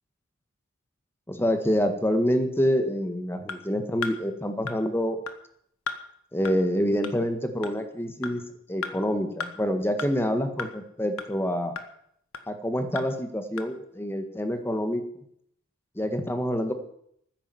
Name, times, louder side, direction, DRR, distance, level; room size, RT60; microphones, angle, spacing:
voice 1, 1.3-5.2 6.3-8.4 8.7-11.8 12.5-15.2 16.0-16.7, equal, 10° left, 7 dB, 1.7 m, -27 dB
sound 1, 3.5-3.6 4.0-4.2 4.7-4.8 5.3-5.4 5.9-6.0 6.5-6.6 7.0-7.1 7.6-7.7 8.2-8.3 8.8-8.9 9.4-9.5 10.0-10.1 10.6-10.7 11.2-11.3 11.8-11.9 12.3-12.4 13.0-13.1 13.6-13.7, left 5 dB, 85° left, 1.5 m, -33 dB
14.0 x 10.0 x 7.9 m, 0.70 s
head